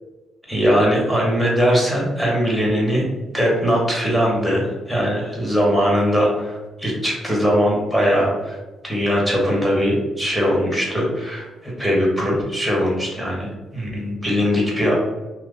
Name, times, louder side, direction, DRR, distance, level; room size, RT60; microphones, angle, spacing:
voice 1, 0.5-3.0 3.3-8.6 8.8-15.0, equal, ahead, -4 dB, 1.2 m, -20 dB
2.8 x 2.5 x 3.8 m, 1.2 s
cardioid pair, 90°, 0 cm